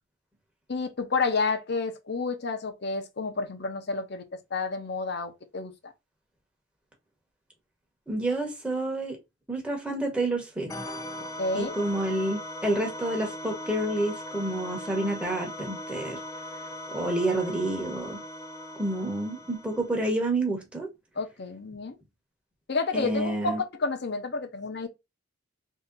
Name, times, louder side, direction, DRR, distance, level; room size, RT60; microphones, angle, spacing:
voice 1, 0.7-4.2 4.5-5.9 11.4-11.7 21.2-22.0 22.7-24.9, left 3 dB, 60° left, 0.8 m, -30 dB
voice 2, 8.1-9.2 9.5-10.7 11.5-16.2 16.9-18.2 18.8-20.9 22.9-23.6, right 1 dB, 5° right, 1.0 m, -29 dB
sound 1, 10.7-20.1, left 1 dB, 15° left, 0.7 m, -39 dB
3.1 x 2.8 x 3.7 m
head